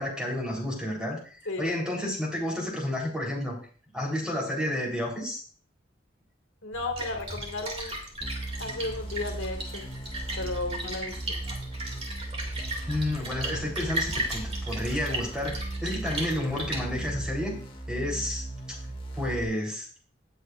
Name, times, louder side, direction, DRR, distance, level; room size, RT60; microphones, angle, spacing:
voice 1, 0.0-3.6 3.9-5.4 12.8-17.5 17.9-18.4 19.1-19.9, left 1 dB, 5° right, -1 dB, 3.7 m, -31 dB
voice 2, 1.5-1.8 6.6-7.9 8.6-9.8 10.3-11.4, left 2 dB, 85° left, 3 dB, 2.0 m, -34 dB
Splash splatter, 6.7-17.3, right 1 dB, 30° right, 2.4 m, -36 dB
sound 1, 8.2-19.5, right 2 dB, 25° left, 1.7 m, -37 dB
17.5 x 8.0 x 2.5 m, 0.42 s
head